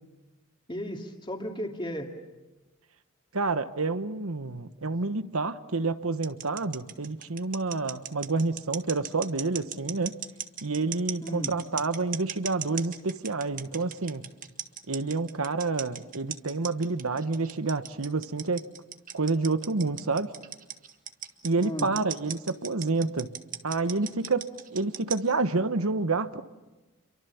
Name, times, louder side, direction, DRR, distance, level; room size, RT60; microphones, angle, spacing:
voice 1, 0.7-2.1 11.2-11.5 21.6-21.9, equal, 25° left, 3 dB, 2.6 m, -34 dB
voice 2, 3.3-10.2 10.6-14.3 14.9-18.6 19.1-20.3 21.4-23.3 23.6-24.5 24.7-26.4, right 3 dB, 75° right, 12 dB, 1.2 m, -28 dB
sound 1, 6.2-25.3, right 9 dB, 40° right, 1.5 m, -37 dB
30.0 x 24.0 x 7.2 m, 1.1 s
head